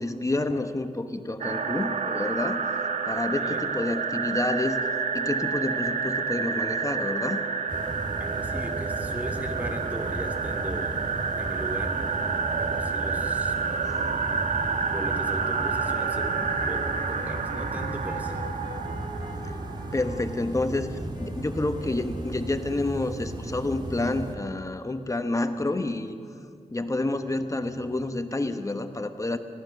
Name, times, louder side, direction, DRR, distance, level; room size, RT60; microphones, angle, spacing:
voice 1, 0.0-2.6 3.0-4.8 5.1-7.4 13.8-14.0 19.9-26.2 26.7-29.4, left 2 dB, 25° left, 7 dB, 1.1 m, -29 dB
sound 1, 1.4-20.4, right 5 dB, 65° right, 1.1 m, -29 dB
sound 2, 7.7-24.4, right 1 dB, 30° right, 1.9 m, -36 dB
voice 2, 8.2-11.0 11.4-12.0 12.6-13.9 14.9-18.4, right 1 dB, 10° right, 4 dB, 2.7 m, -38 dB
sound 3, 13.6-22.8, left 2 dB, 75° left, 2.5 m, -46 dB
24.5 x 17.0 x 6.6 m, 2.2 s
wide cardioid pair, 115°, 14 cm